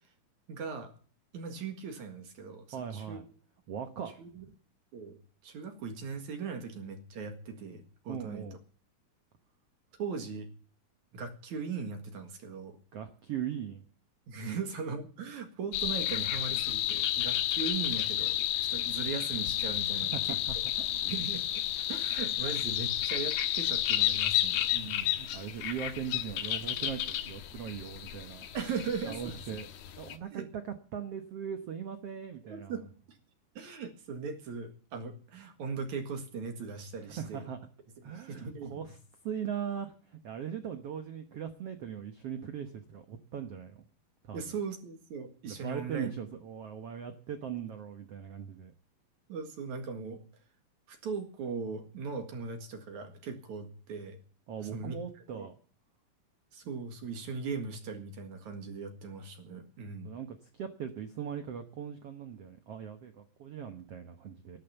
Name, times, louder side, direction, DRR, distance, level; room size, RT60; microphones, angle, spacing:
voice 1, 0.5-0.9 1.3-2.6 2.9-3.2 4.2-4.4 4.9-5.2 5.4-8.5 10.0-10.5 11.1-12.8 14.3-18.4 18.7-20.4 20.9-21.4 21.9-25.1 28.5-29.6 30.3-30.4 32.5-32.9 33.5-37.4 38.0-38.8 44.3-46.1 49.3-50.2 50.9-54.2 54.7-55.0 55.3-55.5 56.5-60.1, right 5 dB, 55° right, 6 dB, 2.8 m, -39 dB
voice 2, 2.7-3.2 3.7-4.5 8.1-8.6 12.9-13.8 14.5-14.6 20.1-20.9 24.8-28.5 29.1-29.7 30.0-32.9 37.0-37.6 38.0-39.0 39.2-43.8 44.2-44.5 45.4-48.7 54.5-55.6 60.0-64.6, right 8 dB, 80° right, 7 dB, 1.3 m, -40 dB
sound 1, 15.7-30.2, left 13 dB, 75° left, 3.0 m, -31 dB
14.0 x 11.5 x 7.0 m, 0.42 s
omnidirectional pair, 4.4 m